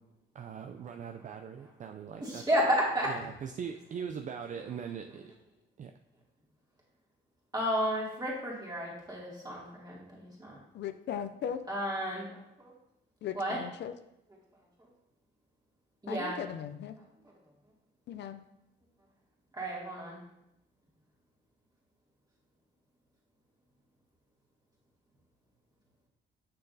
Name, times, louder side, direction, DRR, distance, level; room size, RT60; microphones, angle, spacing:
voice 1, 0.3-2.4 3.1-5.3 5.8-5.9, right 7 dB, 40° right, 6 dB, 0.4 m, -41 dB
voice 2, 2.1-3.5 3.9-4.0 4.3-4.4 4.8-4.9 7.5-10.6 11.7-12.7 13.3-13.7 14.8-14.9 16.0-16.5 17.0-17.1 19.5-20.2, equal, 20° right, -4 dB, 2.4 m, -33 dB
voice 3, 10.7-11.6 13.2-13.9 16.1-17.0 18.1-18.4, left 9 dB, 60° left, 10 dB, 0.4 m, -38 dB
6.5 x 6.0 x 2.7 m, 0.83 s
cardioid pair, 90°, 20 cm